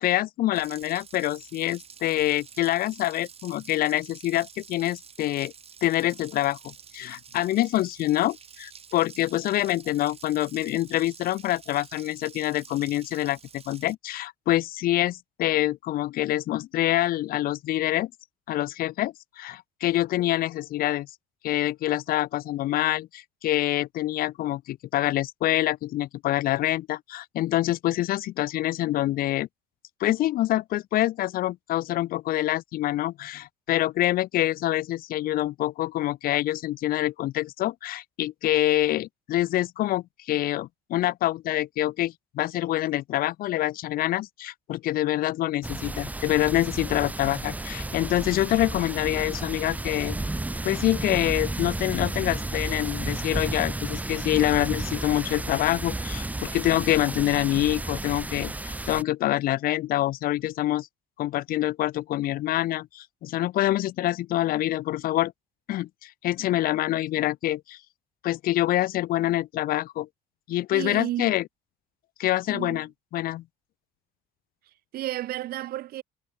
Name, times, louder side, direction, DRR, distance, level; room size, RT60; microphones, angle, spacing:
voice 1, 0.0-5.5 5.8-18.1 18.5-21.1 21.4-29.5 30.0-50.2 50.6-60.9 61.2-65.3 65.7-67.8 68.2-70.1 70.5-71.4 72.2-73.4, left 15 dB, 60° left, 0.4 m, -26 dB
Water tap faucet, 0.5-13.9, right 7 dB, 35° right, 1.8 m, -49 dB
sound 1, 45.6-59.0, right 2 dB, 10° right, 1.0 m, -32 dB
voice 2, 70.7-71.4 72.5-72.8 74.9-76.0, right 14 dB, 65° right, 0.6 m, -32 dB
cardioid pair, 110°, 17 cm